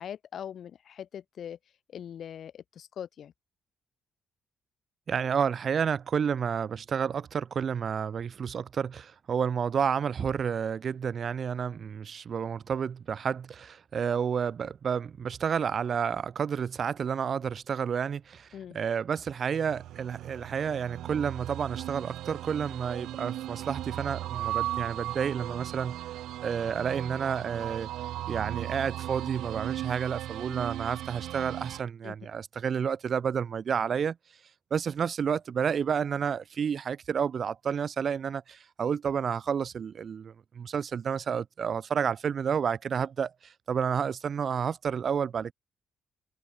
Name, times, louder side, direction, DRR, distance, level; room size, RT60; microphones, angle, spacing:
voice 1, 0.0-1.6 1.9-3.3 18.5-18.8 32.0-32.2, left 9 dB, 60° left, 2.1 m, -41 dB
voice 2, 5.1-18.5 18.7-26.0 26.4-27.9 28.3-34.2 34.7-45.5, right 7 dB, 50° right, 3.3 m, -30 dB
sound 1, 19.5-31.8, right 13 dB, 85° right, 1.0 m, -37 dB
cardioid pair, 90°, 0 cm